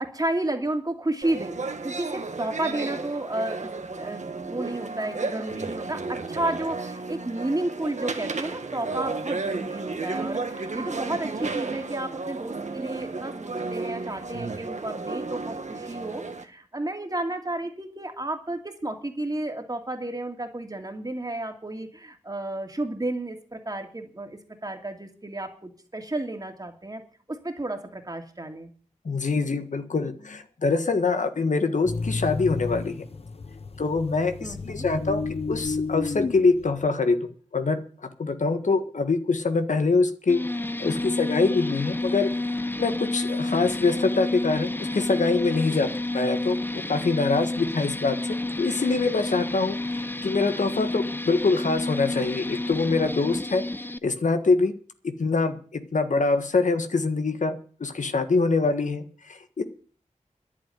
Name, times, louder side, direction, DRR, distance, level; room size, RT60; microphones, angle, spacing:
voice 1, 0.0-27.0 27.3-28.7 34.4-34.9, right 1 dB, 30° right, 4 dB, 2.6 m, -32 dB
sound 1, 1.2-16.4, right 3 dB, 70° right, 1.6 m, -33 dB
voice 2, 29.0-32.9 33.8-40.4 40.8-42.3 42.8-49.8 50.2-53.6 54.0-54.7 55.2-59.6, left 3 dB, 75° left, 8 dB, 1.5 m, -24 dB
sound 2, 31.9-36.9, left 4 dB, 55° left, 0.7 m, -32 dB
sound 3, 40.3-54.0, left 2 dB, 15° left, 0.6 m, -30 dB
11.0 x 8.3 x 9.3 m, 0.42 s
wide cardioid pair, 85°, 13 cm